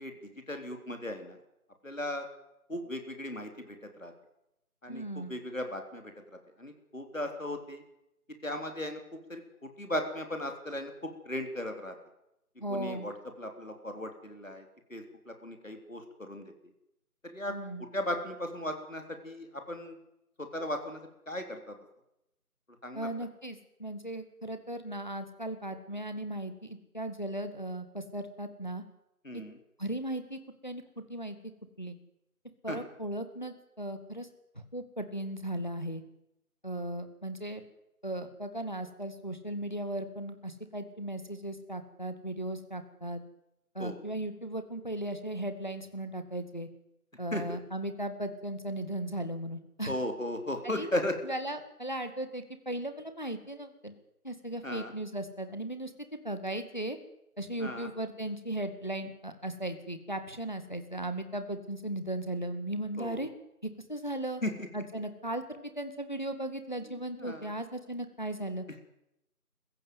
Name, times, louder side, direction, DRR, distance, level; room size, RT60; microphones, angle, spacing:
voice 1, 0.0-1.4 1.8-2.3 2.7-4.1 4.8-6.1 6.6-7.8 8.4-9.0 9.3-10.9 11.3-12.0 12.7-16.4 17.2-20.0 20.4-21.0 21.3-21.8 22.8-23.1 29.2-29.6 32.7-32.8 43.8-44.0 47.3-47.6 49.9-51.2 54.6-54.9 57.6-57.9 63.0-63.2 64.4-64.7 66.9-67.5, left 1 dB, 60° left, 6 dB, 3.8 m, -37 dB
voice 2, 4.9-5.3 12.6-13.1 17.5-17.8 22.9-28.8 29.3-29.4 29.8-30.8 31.1-31.4 31.8-32.0 32.6-34.3 34.7-36.0 36.6-37.6 38.0-43.2 43.8-46.7 47.2-49.9 50.6-50.9 51.3-53.9 54.2-57.0 57.4-63.3 63.9-64.4 64.7-68.6, right 1 dB, 30° left, 9 dB, 1.8 m, -37 dB
21.5 x 15.5 x 9.4 m, 0.84 s
figure-of-eight pair, 180°, 45 cm